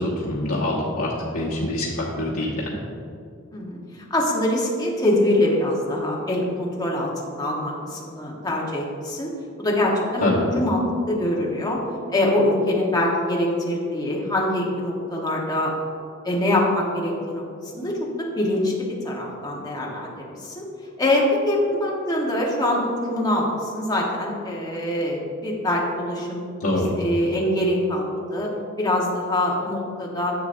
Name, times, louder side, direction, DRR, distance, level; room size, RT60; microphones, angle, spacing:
voice 1, 0.0-2.8 10.2-10.5 26.6-26.9, left 1 dB, 80° left, -6 dB, 1.1 m, -25 dB
voice 2, 4.1-9.3 9.6-11.8 12.1-15.7 16.2-17.4 17.7-18.0 18.4-20.6 21.0-26.4 26.7-28.5 28.8-30.3, left 1 dB, 20° left, -3 dB, 1.2 m, -24 dB
10.0 x 7.1 x 2.6 m, 2.4 s
head